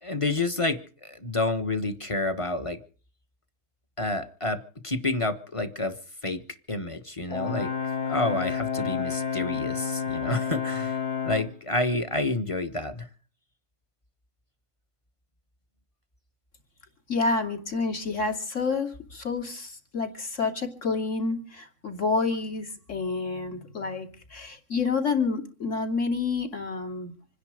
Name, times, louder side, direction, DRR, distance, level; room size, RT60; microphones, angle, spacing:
voice 1, 0.0-2.8 4.0-6.0 6.2-6.4 6.7-7.7 8.1-13.1, left 2 dB, 20° left, 1.3 m, -29 dB
Brass instrument, 7.3-11.5, left 7 dB, 70° left, 3.6 m, -30 dB
voice 2, 17.1-27.1, left 4 dB, 50° left, 3.2 m, -29 dB
26.5 x 10.5 x 5.0 m
omnidirectional pair, 1.6 m